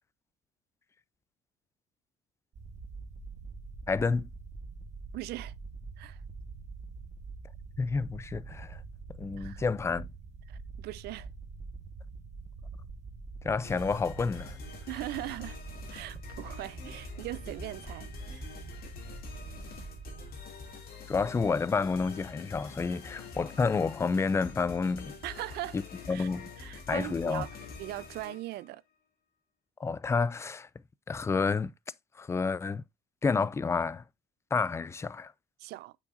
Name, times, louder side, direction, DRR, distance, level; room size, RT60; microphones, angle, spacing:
sound 1, 2.5-20.4, right 4 dB, 45° right, 1.2 m, -45 dB
voice 1, 3.9-4.3 7.8-8.8 9.2-10.1 13.4-14.6 21.1-25.1 25.7-25.8 26.1-26.5 26.9-27.5 29.8-30.7 31.1-31.7 32.2-32.8 33.2-34.0 34.5-35.3, left 4 dB, 15° left, 0.3 m, -29 dB
voice 2, 5.1-5.5 6.0-6.2 9.4-9.6 10.5-11.3 14.9-15.6 15.9-18.5 25.2-25.8 26.1-26.3 26.6-27.5 27.8-28.8 35.6-35.9, right 17 dB, 75° right, 0.4 m, -40 dB
sound 2, 13.6-28.7, left 4 dB, 60° left, 2.6 m, -46 dB
7.9 x 6.0 x 2.5 m
cardioid pair, 110°, 17 cm